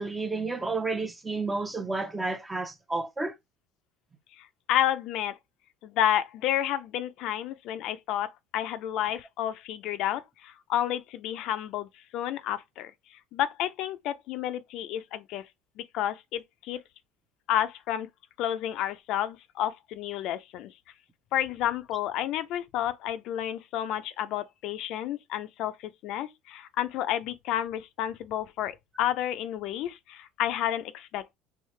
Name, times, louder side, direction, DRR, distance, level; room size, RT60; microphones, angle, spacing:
voice 1, 0.0-3.3, right 3 dB, 10° right, 0.7 m, -31 dB
voice 2, 4.4-5.3 5.8-12.9 13.3-15.4 15.8-16.8 17.5-18.1 18.4-20.7 21.3-31.3, left 11 dB, 65° left, 0.5 m, -30 dB
4.7 x 2.7 x 3.2 m
supercardioid pair, 120°, 0 cm